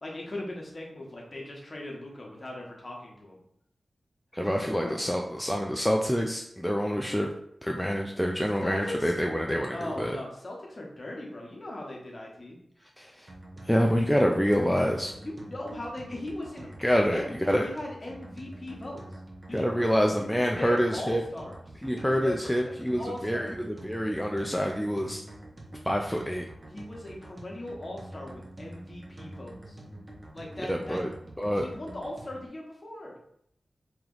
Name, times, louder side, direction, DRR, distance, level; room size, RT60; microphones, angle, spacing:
voice 1, 0.0-3.4 4.4-4.9 8.6-9.1 9.7-12.6 15.2-16.7 17.1-17.4 17.6-19.2 19.5-19.8 20.2-21.6 22.0-23.5 26.7-29.8 30.3-31.1 31.5-33.2, left 1 dB, 35° left, -2 dB, 1.0 m, -39 dB
voice 2, 4.3-7.3 7.6-10.2 13.0-13.3 13.7-15.1 16.8-17.6 19.5-21.2 21.8-25.2 25.9-26.4 30.7-31.1 31.4-31.7, equal, 5° left, 1 dB, 0.3 m, -27 dB
sound 1, 13.3-32.5, right 1 dB, 40° right, 0.8 m, -46 dB
3.1 x 2.9 x 3.8 m, 0.73 s
wide cardioid pair, 100°, 0 cm